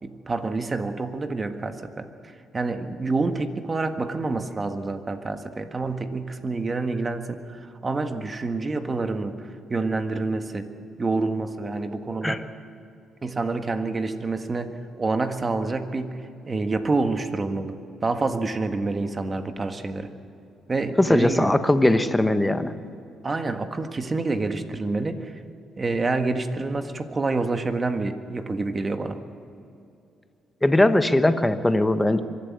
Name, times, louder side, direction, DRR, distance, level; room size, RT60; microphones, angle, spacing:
voice 1, 0.0-2.1 2.5-10.7 11.0-12.5 13.2-17.7 18.0-20.1 20.7-21.5 23.2-25.3 25.8-29.2, right 3 dB, 30° right, 8 dB, 1.6 m, -27 dB
voice 2, 21.0-22.7 30.6-32.2, left 1 dB, 10° left, 10 dB, 1.2 m, -20 dB
24.0 x 11.5 x 9.6 m, 2.6 s
cardioid pair, 90°, 0 cm